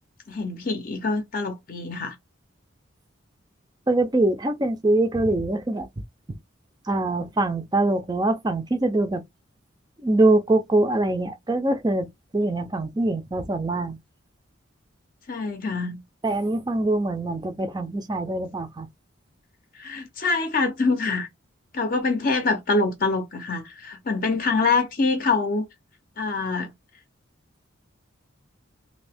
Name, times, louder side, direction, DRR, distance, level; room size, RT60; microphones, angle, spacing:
voice 1, 0.3-2.2 15.3-16.0 19.8-21.3 21.7-25.7 26.2-26.7, left 3 dB, 45° left, 0.6 m, -25 dB
voice 2, 3.9-5.9 6.9-9.2 10.0-12.1 12.3-14.0 16.2-18.9, right 2 dB, 20° right, 0.4 m, -23 dB
2.8 x 2.6 x 3.4 m
head